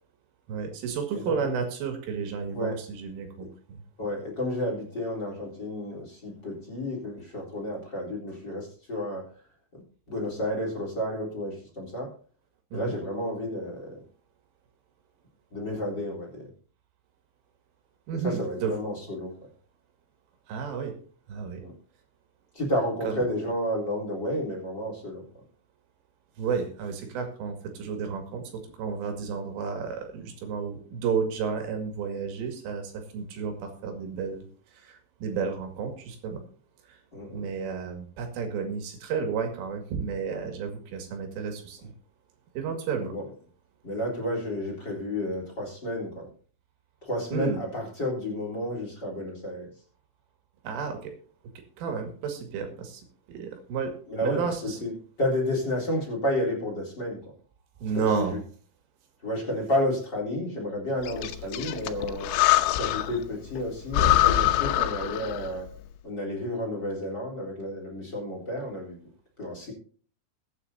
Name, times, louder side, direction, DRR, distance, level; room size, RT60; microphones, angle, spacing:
voice 1, 0.5-4.1 12.7-13.0 18.1-18.7 20.5-21.0 21.3-21.6 23.0-23.2 26.4-34.4 34.8-36.4 37.3-41.9 42.5-43.1 47.3-47.6 50.6-51.1 51.8-53.0 53.3-53.9 54.2-54.8 57.8-58.4, right 6 dB, 85° right, 5 dB, 4.7 m, -32 dB
voice 2, 4.0-9.3 9.7-9.8 10.1-12.1 12.7-14.0 15.5-16.5 18.1-19.3 21.6-21.7 22.5-25.2 37.1-37.5 43.0-43.2 43.8-46.3 47.0-49.7 51.8-51.9 54.1-54.9 55.2-57.2 57.9-58.4 59.2-62.3 62.8-65.7 66.0-69.0 69.4-69.7, left 1 dB, 25° left, 0 dB, 4.0 m, -31 dB
Breathing, 61.0-63.2 63.6-63.7 63.9-65.6, left 14 dB, 85° left, 3.4 m, -24 dB
22.0 x 8.9 x 2.8 m, 0.42 s
omnidirectional pair, 5.6 m